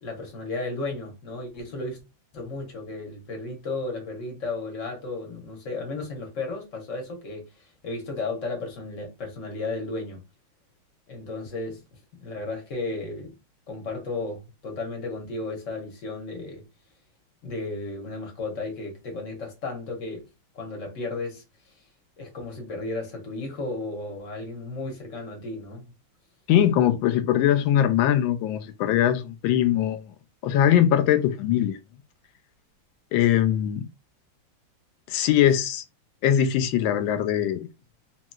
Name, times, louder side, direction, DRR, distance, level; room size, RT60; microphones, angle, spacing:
voice 1, 0.0-2.0 2.3-7.5 7.8-10.2 11.1-11.8 12.1-13.4 13.7-16.7 17.4-20.3 20.5-21.4 22.2-25.9 26.8-26.9, left 3 dB, 45° left, 1.1 m, -34 dB
voice 2, 26.5-30.1 30.4-31.8 33.1-33.9 35.1-35.8 36.2-37.7, left 10 dB, 75° left, 1.3 m, -21 dB
3.1 x 2.9 x 2.2 m
omnidirectional pair, 2.3 m